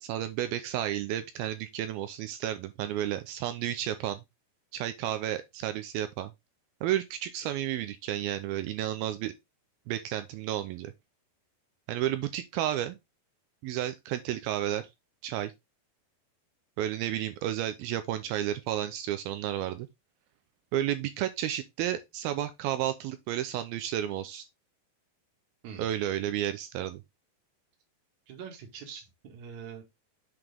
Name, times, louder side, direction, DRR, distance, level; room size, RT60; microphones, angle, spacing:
voice 1, 0.0-4.2 4.7-6.3 6.8-9.3 9.9-10.9 11.9-13.0 13.6-14.8 15.2-15.5 16.8-19.9 20.7-24.4 25.8-27.0, right 12 dB, 85° right, 2.2 m, -32 dB
voice 2, 28.3-29.8, right 7 dB, 55° right, 2.7 m, -44 dB
7.9 x 5.0 x 3.5 m
omnidirectional pair, 4.9 m